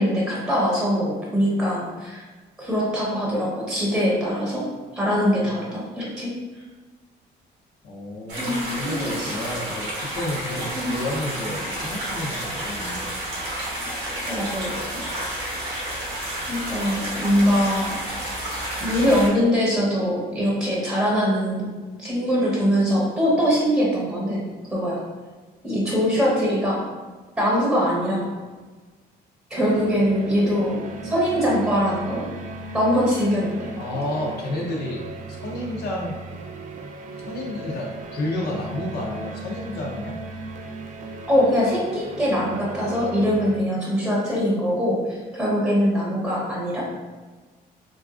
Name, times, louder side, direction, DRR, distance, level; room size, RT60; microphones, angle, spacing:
voice 1, 0.0-2.2 2.6-4.7 4.9-6.6 8.4-9.3 10.7-10.9 14.3-15.3 16.5-18.3 18.8-21.7 22.0-24.4 24.7-25.0 25.6-26.8 27.4-28.3 29.5-32.2 32.7-33.7 41.3-46.8, equal, 5° right, -5 dB, 0.9 m, -22 dB
voice 2, 5.4-5.7 7.8-13.1 33.8-35.0 35.3-36.2 37.3-40.2, left 1 dB, 70° left, -1 dB, 0.6 m, -31 dB
sound 1, 8.3-19.3, right 1 dB, 85° right, 1.1 m, -30 dB
sound 2, 29.5-43.6, right 2 dB, 45° right, 0.4 m, -37 dB
3.8 x 2.4 x 2.4 m, 1.3 s
cardioid pair, 100°, 17 cm